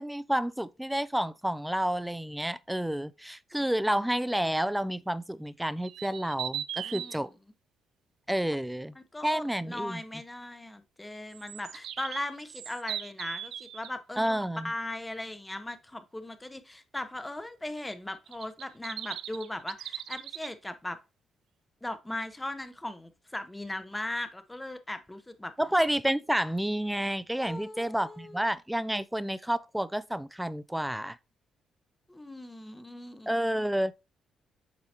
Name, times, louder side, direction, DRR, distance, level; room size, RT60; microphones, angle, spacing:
voice 1, 0.0-7.3 8.3-9.0 9.2-10.0 14.2-14.7 25.6-31.2 33.3-33.9, right 1 dB, 5° right, 0.4 m, -30 dB
sound 1, 5.8-7.2 11.3-13.9 18.3-20.5, right 11 dB, 80° right, 0.5 m, -38 dB
voice 2, 6.8-7.2 9.0-21.0 21.8-25.5 27.4-28.5 32.1-33.3, left 1 dB, 10° left, 0.8 m, -38 dB
7.5 x 4.7 x 2.9 m
cardioid pair, 90°, 0 cm